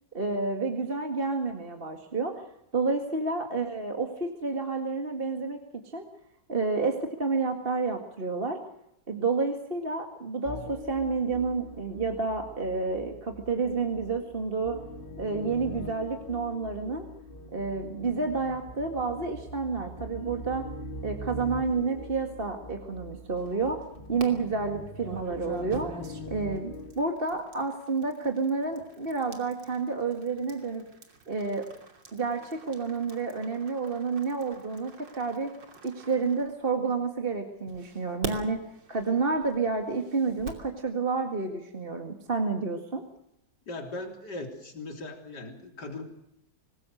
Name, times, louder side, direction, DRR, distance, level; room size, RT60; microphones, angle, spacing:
voice 1, 0.1-2.4 2.7-5.6 5.9-6.0 6.5-8.6 9.1-14.8 15.2-17.1 17.5-20.7 21.0-23.8 24.1-25.9 26.3-30.8 31.3-31.7 32.1-35.5 35.8-38.6 38.9-43.0, right 4 dB, 30° right, 4 dB, 2.1 m, -30 dB
sound 1, 10.4-26.9, equal, 25° left, 3.0 m, -43 dB
sound 2, 23.4-24.3 25.0-37.0 37.7-40.7, right 3 dB, 90° right, 3.6 m, -44 dB
voice 2, 43.7-46.0, left 2 dB, 65° left, 3 dB, 4.1 m, -39 dB
25.0 x 20.0 x 6.6 m, 0.79 s
omnidirectional pair, 1.9 m